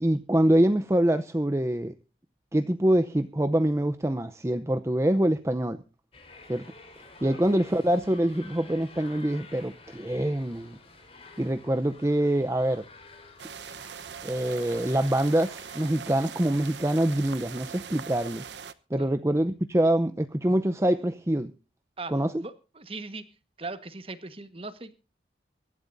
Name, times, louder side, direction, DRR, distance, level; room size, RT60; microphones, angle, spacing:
voice 1, 0.0-2.0 2.5-5.8 6.5-6.7 7.2-10.8 11.4-12.8 14.2-18.4 18.9-21.5 22.1-22.3, right 1 dB, 15° right, 0.6 m, -25 dB
sound 1, 6.1-15.9, left 3 dB, 35° left, 4.1 m, -50 dB
sound 2, 13.4-18.7, right 7 dB, 75° right, 0.9 m, -41 dB
voice 2, 22.4-23.3 23.6-24.9, right 3 dB, 30° right, 1.3 m, -39 dB
24.0 x 12.0 x 2.6 m
head